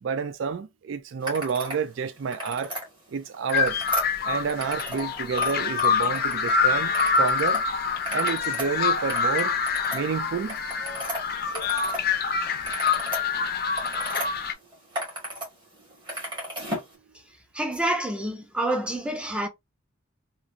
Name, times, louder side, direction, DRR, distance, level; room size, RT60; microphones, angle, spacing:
voice 1, 0.0-2.8 3.1-3.8 4.2-7.7 8.1-9.5 9.9-10.6, right 6 dB, 65° right, 0.3 m, -29 dB
sound 1, 1.2-1.8 2.2-2.8 3.3-5.1 5.3-6.5 6.9-7.6 7.9-12.0 12.4-14.3 14.7-15.5 15.7-16.9, equal, 20° right, 1.4 m, -35 dB
sound 2, 3.5-14.5, left 5 dB, 45° left, 0.5 m, -26 dB
voice 2, 17.5-19.5, right 1 dB, 5° right, 0.5 m, -27 dB
3.0 x 2.5 x 2.5 m
head